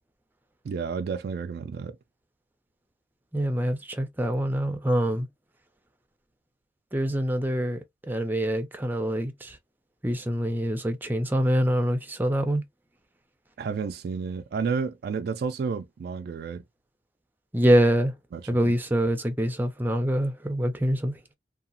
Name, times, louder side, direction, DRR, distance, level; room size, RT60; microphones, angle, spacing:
voice 1, 0.6-2.0 13.6-16.6 18.3-18.8, right 5 dB, 60° right, 0.3 m, -31 dB
voice 2, 3.3-5.3 6.9-9.6 10.0-12.6 17.5-18.1 18.5-21.3, equal, 10° right, 0.5 m, -25 dB
2.8 x 2.3 x 2.6 m
head